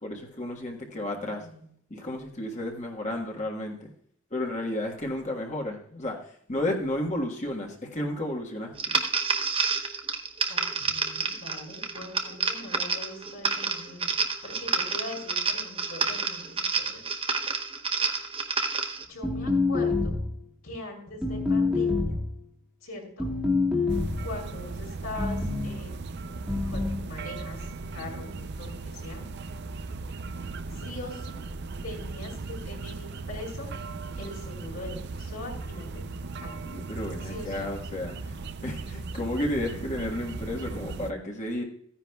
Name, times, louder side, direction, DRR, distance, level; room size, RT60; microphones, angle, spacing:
voice 1, 0.0-1.4 1.9-3.9 4.3-9.0 36.6-41.6, left 1 dB, 35° left, 0 dB, 1.5 m, -32 dB
voice 2, 1.1-1.6 10.5-14.1 14.4-17.0 19.1-20.2 20.6-22.2 22.8-23.3 24.2-26.0 26.2-26.4 26.7-27.6 27.9-29.2 30.8-31.4 31.8-33.7 34.2-36.6 37.3-37.6, left 2 dB, 85° left, -6 dB, 4.7 m, -41 dB
sound 1, 8.8-19.0, right 5 dB, 25° right, 0.8 m, -29 dB
sound 2, 19.2-20.4 21.2-22.3 23.2-24.3 25.2-25.7 26.5-27.1, left 3 dB, 5° right, 1.6 m, -26 dB
sound 3, 23.9-41.1, right 3 dB, 55° right, 0.5 m, -38 dB
15.0 x 9.9 x 2.3 m, 0.65 s
head